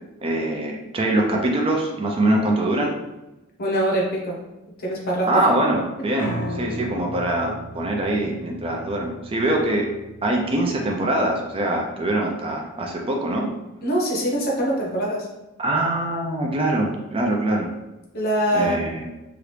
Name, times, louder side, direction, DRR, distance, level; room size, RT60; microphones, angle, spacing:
voice 1, 0.2-3.0 5.3-9.9 10.2-13.5 15.6-17.7 18.5-19.1, right 1 dB, 25° right, 0 dB, 0.4 m, -23 dB
voice 2, 3.6-4.4 4.8-5.4 13.8-15.3 18.1-18.8, right 1 dB, 45° left, -2 dB, 0.8 m, -23 dB
Piano, 6.2-12.4, equal, 75° left, 0.8 m, -37 dB
2.9 x 2.4 x 3.2 m, 0.99 s
head